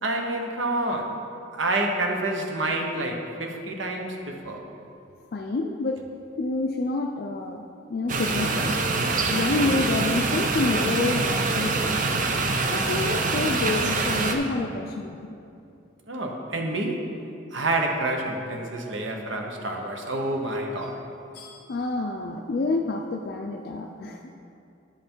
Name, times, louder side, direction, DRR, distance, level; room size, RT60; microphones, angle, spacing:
voice 1, 0.0-1.2 1.5-4.6 9.5-9.8 16.1-17.1 17.5-21.0, right 2 dB, 80° right, 2 dB, 1.0 m, -28 dB
voice 2, 5.3-6.0 6.4-8.8 9.3-12.0 12.7-15.4 21.3-24.2, left 3 dB, 50° left, 3 dB, 0.4 m, -28 dB
sound 1, 8.1-14.3, right 3 dB, 40° right, 0.6 m, -25 dB
10.0 x 5.5 x 4.5 m, 2.6 s
head